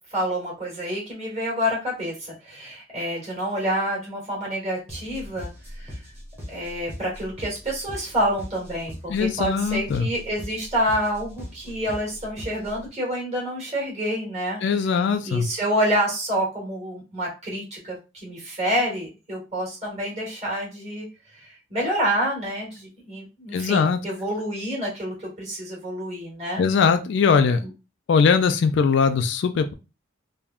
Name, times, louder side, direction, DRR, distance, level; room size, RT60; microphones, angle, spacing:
voice 1, 0.1-5.5 5.8-6.0 6.5-14.6 14.9-21.1 21.3-26.6 27.6-27.7, equal, 35° right, -4 dB, 1.7 m, -28 dB
sound 1, 4.9-12.9, equal, 10° right, 1.1 m, -40 dB
voice 2, 9.1-10.1 14.6-15.5 23.5-24.0 26.6-27.6 28.1-29.7, left 5 dB, 60° left, 9 dB, 0.3 m, -20 dB
3.4 x 2.2 x 2.3 m, 0.29 s
head